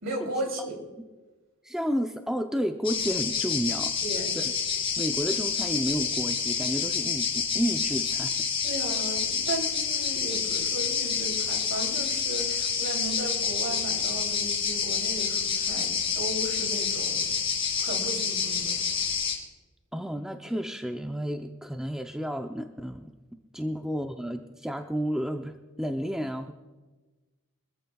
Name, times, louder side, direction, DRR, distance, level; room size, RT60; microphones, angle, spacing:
voice 1, 0.0-0.8 4.0-4.3 8.6-17.2 17.8-18.7, right 1 dB, 60° right, 2 dB, 3.1 m, -35 dB
voice 2, 1.6-3.9 4.4-4.5 5.0-8.5 19.9-23.1 23.5-26.5, equal, 5° right, 4 dB, 0.5 m, -31 dB
sound 1, 2.8-19.3, left 6 dB, 25° left, 2.3 m, -28 dB
24.5 x 14.0 x 2.3 m, 1.2 s
head